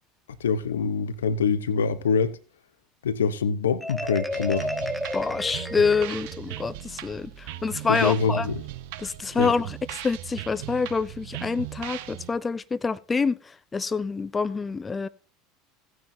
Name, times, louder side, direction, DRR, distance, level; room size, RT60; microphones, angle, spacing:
voice 1, 0.4-2.4 3.0-4.7 7.9-8.6 9.4-9.5, left 5 dB, 80° left, 0.7 m, -25 dB
Marimba xylophone, 3.8-6.6, left 1 dB, ahead, 1.0 m, -32 dB
sound 1, 4.3-12.3, right 14 dB, 65° right, 0.8 m, -38 dB
voice 2, 5.1-8.5 9.0-15.1, left 4 dB, 20° left, 0.5 m, -27 dB
15.5 x 9.4 x 2.7 m
hypercardioid pair, 75°, 0 cm